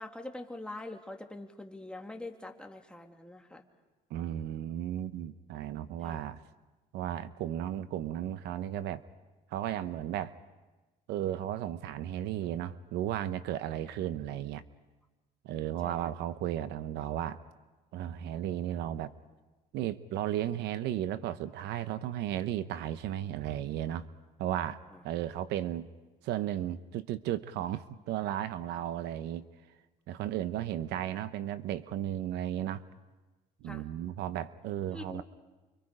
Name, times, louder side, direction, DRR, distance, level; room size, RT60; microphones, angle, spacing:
voice 1, 0.0-3.6 6.0-6.2 15.8-16.0 24.9-25.0 33.6-33.9 34.9-35.2, left 2 dB, 5° left, 3 dB, 2.0 m, -44 dB
voice 2, 4.1-6.4 6.9-9.0 9.5-10.3 11.1-14.6 15.4-17.4 17.9-19.1 19.7-24.1 24.4-24.8 25.0-25.9 26.2-29.5 30.1-32.8 33.6-35.2, right 11 dB, 85° right, 13 dB, 0.9 m, -34 dB
29.5 x 25.0 x 5.0 m, 1.2 s
cardioid pair, 110°, 17 cm